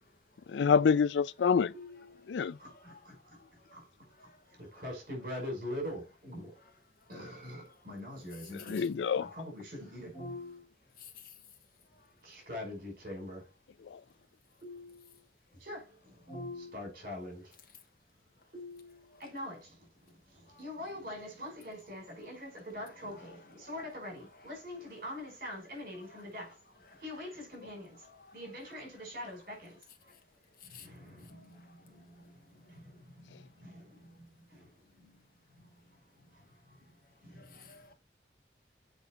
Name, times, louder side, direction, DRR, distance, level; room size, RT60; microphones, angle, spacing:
voice 1, 0.5-1.7 2.3-2.6 8.5-9.3 13.9-14.0, left 6 dB, 90° left, 0.4 m, -27 dB
voice 2, 3.4-3.8 4.2-4.3 9.2-9.3 11.0-11.1 20.5-20.6 26.9-27.0 30.6-30.9 37.4-37.9, left 6 dB, 55° left, 1.7 m, -54 dB
voice 3, 4.8-6.4 7.1-8.8 9.4-10.6 12.5-13.4 14.6-14.9 15.7-15.8 16.3-17.4 18.5-18.8 19.2-19.6 20.6-23.4 23.7-26.4 27.0-27.9 28.3-29.6, left 1 dB, 50° right, 5.4 m, -42 dB
8.1 x 4.6 x 4.5 m
head